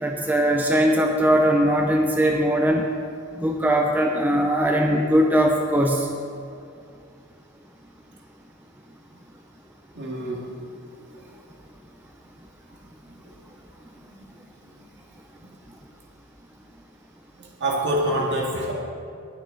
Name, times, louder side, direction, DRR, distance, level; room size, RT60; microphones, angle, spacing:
voice 1, 0.0-2.9 3.4-6.1, equal, 10° right, 2 dB, 0.5 m, -20 dB
voice 2, 9.9-10.4 14.1-14.2 15.4-15.5 17.4-18.7, right 1 dB, 55° right, -2 dB, 2.0 m, -26 dB
19.5 x 6.6 x 3.8 m, 2.4 s
head